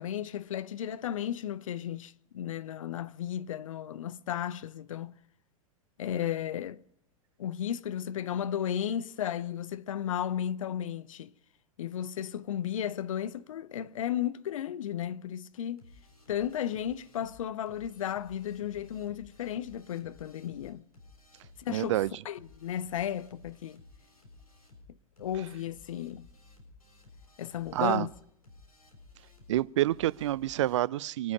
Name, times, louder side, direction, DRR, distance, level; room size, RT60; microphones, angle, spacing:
voice 1, 0.0-5.1 6.0-6.8 7.4-11.3 11.8-15.8 16.3-20.8 21.7-22.0 22.2-23.8 25.2-26.3 27.4-28.1, left 10 dB, 65° left, 0.7 m, -34 dB
sound 1, 15.8-30.8, left 3 dB, 80° left, 6.7 m, -56 dB
voice 2, 21.7-22.2 27.7-28.1 29.5-31.3, right 14 dB, 55° right, 0.5 m, -28 dB
25.5 x 9.5 x 5.2 m
figure-of-eight pair, 90°, 19 cm